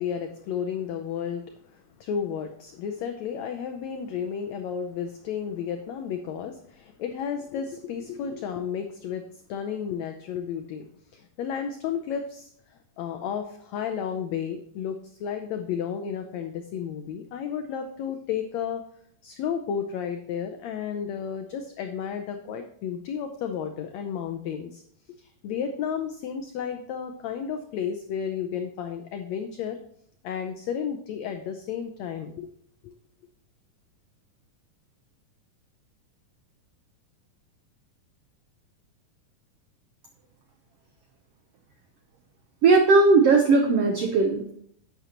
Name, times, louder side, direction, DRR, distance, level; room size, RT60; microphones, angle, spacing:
voice 1, 0.0-1.4 1.7-9.2 9.5-10.8 11.1-18.8 19.2-24.8 25.2-29.8 30.2-32.5 32.8-32.9, left 7 dB, 90° left, 6 dB, 1.5 m, -32 dB
voice 2, 42.6-44.5, right 3 dB, 90° right, 3 dB, 1.3 m, -18 dB
11.0 x 8.2 x 3.0 m, 0.67 s
omnidirectional pair, 3.9 m